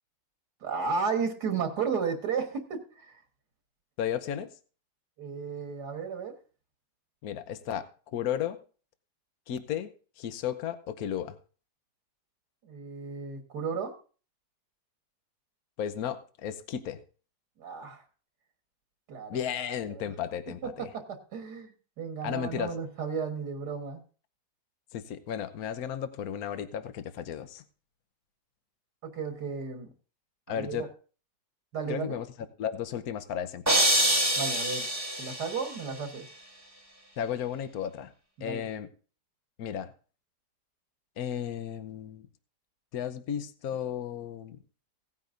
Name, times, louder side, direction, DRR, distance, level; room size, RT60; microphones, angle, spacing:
voice 1, 0.6-3.2 5.2-6.3 12.6-13.9 17.6-18.0 19.1-20.0 20.5-24.0 29.0-29.9 30.5-30.9 31.7-32.2 34.4-34.9 35.2-36.3 38.4-38.7, right 5 dB, 75° right, 5 dB, 2.0 m, -34 dB
voice 2, 4.0-4.5 7.2-8.6 9.5-9.9 10.2-11.4 15.8-17.0 19.3-20.9 22.2-22.7 24.9-27.6 30.5-30.9 31.9-32.3 32.6-33.9 37.2-38.1 38.4-38.9 39.6-39.9 41.2-42.3 42.9-44.6, left 9 dB, 65° left, 11 dB, 1.3 m, -34 dB
sound 1, 33.7-35.7, right 1 dB, 10° right, 1.4 m, -25 dB
17.0 x 9.4 x 2.6 m, 0.38 s
omnidirectional pair, 1.8 m